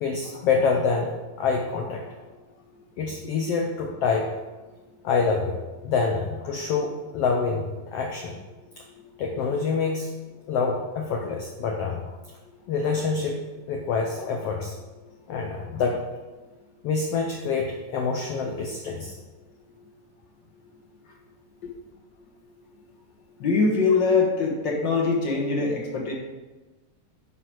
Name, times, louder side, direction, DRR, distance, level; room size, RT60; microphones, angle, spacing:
voice 1, 0.0-2.2 3.0-4.3 5.0-5.5 5.8-7.6 7.9-8.4 9.2-10.1 10.5-12.0 12.7-13.4 13.7-14.7 15.3-16.0 16.8-19.1, left 5 dB, 80° left, 1 dB, 1.3 m, -26 dB
voice 2, 23.4-26.1, left 4 dB, 55° left, -1 dB, 1.4 m, -22 dB
9.7 x 6.0 x 4.7 m, 1.2 s
omnidirectional pair, 3.8 m